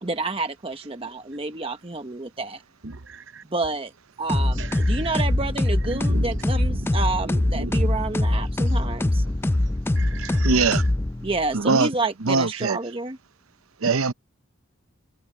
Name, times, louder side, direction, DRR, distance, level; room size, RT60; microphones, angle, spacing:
voice 1, 0.0-2.6 3.5-3.9 4.2-9.2 11.2-13.2, right 3 dB, 25° right, 1.0 m, -29 dB
voice 2, 2.8-3.4 4.5-5.1 5.8-6.4 6.7-7.0 7.4-7.9 8.7-8.8 9.9-10.9, right 3 dB, 60° right, 0.8 m, -36 dB
sound 1, 4.3-11.5, left 1 dB, 10° left, 0.3 m, -23 dB
voice 3, 10.4-10.8 11.5-11.9 12.2-12.8 13.8-14.1, right 4 dB, 85° right, 0.8 m, -21 dB
head